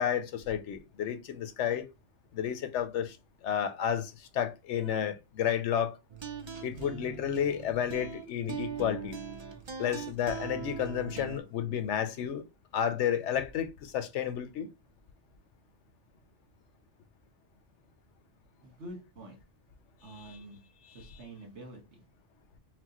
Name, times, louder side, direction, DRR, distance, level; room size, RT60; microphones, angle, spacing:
voice 1, 0.0-1.9 2.3-3.2 3.4-6.0 6.6-9.2 9.8-12.4 12.7-14.7, left 9 dB, 75° left, 0.9 m, -31 dB
sound 1, 6.1-11.4, right 6 dB, 45° right, 0.3 m, -40 dB
voice 2, 18.6-19.4 20.0-20.6 20.9-22.0, right 1 dB, 65° right, 1.7 m, -47 dB
5.9 x 2.1 x 2.9 m
omnidirectional pair, 1.3 m